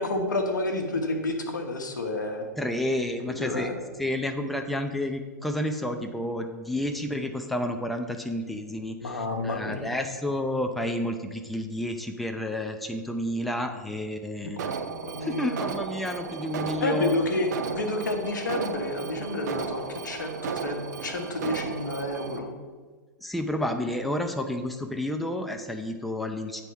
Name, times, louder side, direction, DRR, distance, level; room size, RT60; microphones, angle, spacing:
voice 1, 0.0-2.5 3.3-3.8 9.0-10.0 14.4-14.6 14.9-15.6 16.8-22.5, left 2 dB, 85° left, 3 dB, 0.9 m, -30 dB
voice 2, 2.6-3.7 4.0-14.6 15.2-17.2 23.2-26.6, left 1 dB, ahead, 4 dB, 0.5 m, -30 dB
Alarm, 14.6-22.4, right 6 dB, 70° right, 0.5 m, -34 dB
8.8 x 3.5 x 4.6 m, 1.4 s
hypercardioid pair, 105°, 10 cm